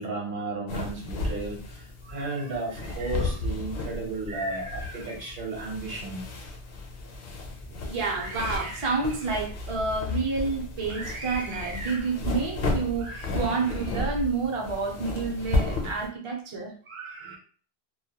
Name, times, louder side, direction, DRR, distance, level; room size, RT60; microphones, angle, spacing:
voice 1, 0.0-6.2 17.2-17.3, right 2 dB, 55° right, -2 dB, 0.9 m, -34 dB
sound 1, 0.7-16.1, left 2 dB, 65° left, 0.8 m, -33 dB
voice 2, 4.3-5.1 7.8-17.4, right 4 dB, 40° right, 1 dB, 0.5 m, -30 dB
2.2 x 2.1 x 2.8 m, 0.43 s
omnidirectional pair, 1.1 m